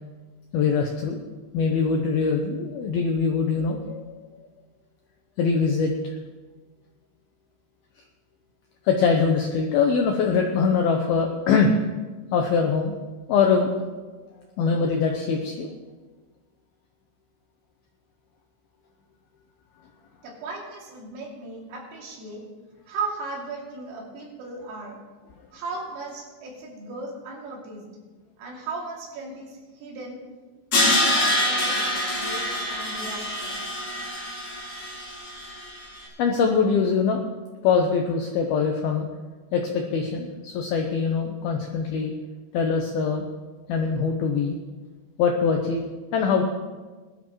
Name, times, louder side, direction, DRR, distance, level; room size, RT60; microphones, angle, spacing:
voice 1, 0.5-1.2 1.5-4.2 5.4-5.9 8.9-11.7 12.3-12.9 13.3-13.7 14.6-15.7 36.2-37.2 37.6-39.1 39.5-42.1 42.5-43.3 43.7-44.6 45.2-45.8 46.1-46.4, left 5 dB, 80° left, 2 dB, 2.2 m, -23 dB
voice 2, 20.2-22.5 22.9-25.0 25.5-27.9 28.4-30.2 30.8-31.9 32.2-33.6, right 3 dB, 90° right, -2 dB, 5.3 m, -36 dB
Crash cymbal, 30.7-35.8, left 1 dB, 40° left, 4.0 m, -25 dB
20.5 x 12.5 x 3.1 m, 1.3 s
omnidirectional pair, 5.7 m